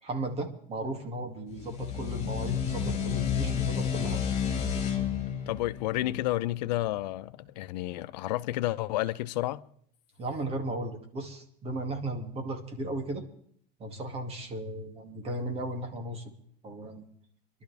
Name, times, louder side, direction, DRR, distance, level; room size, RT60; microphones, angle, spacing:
voice 1, 0.0-4.2 10.2-13.2 13.8-16.2 16.6-17.1, right 2 dB, 30° right, 2.5 m, -35 dB
sound 1, 1.5-6.8, left 8 dB, 30° left, 5.3 m, -31 dB
voice 2, 5.5-9.6, left 16 dB, 85° left, 0.9 m, -31 dB
26.0 x 12.0 x 3.5 m
supercardioid pair, 150°, 21 cm